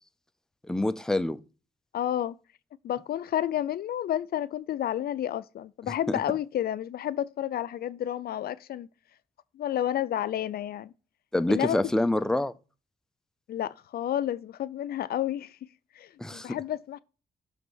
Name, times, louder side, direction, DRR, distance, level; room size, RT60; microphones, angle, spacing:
voice 1, 0.7-1.4 11.3-12.5 16.2-16.6, left 1 dB, 5° left, 0.6 m, -26 dB
voice 2, 1.9-2.3 2.8-8.9 9.5-10.9 11.5-11.8 13.5-15.7 15.9-17.0, left 11 dB, 70° left, 0.5 m, -30 dB
6.8 x 3.6 x 6.1 m
cardioid pair, 85°, 16 cm